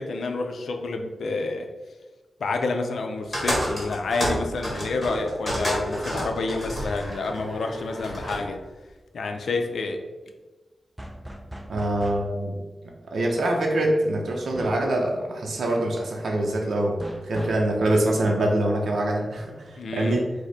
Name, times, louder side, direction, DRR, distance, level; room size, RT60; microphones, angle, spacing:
voice 1, 0.0-1.7 2.4-8.6 9.1-10.0 19.8-20.2, left 3 dB, 75° left, 4 dB, 0.5 m, -29 dB
sound 1, 3.3-8.5, equal, 15° left, 1.3 m, -30 dB
sound 2, 11.0-12.3 14.6-14.9 17.0-17.7, equal, 10° right, 0.4 m, -38 dB
voice 2, 11.7-12.6 13.1-17.0 17.2-20.3, right 1 dB, 65° right, 0 dB, 0.6 m, -24 dB
4.9 x 2.1 x 4.1 m, 1.2 s
wide cardioid pair, 175°, 0 cm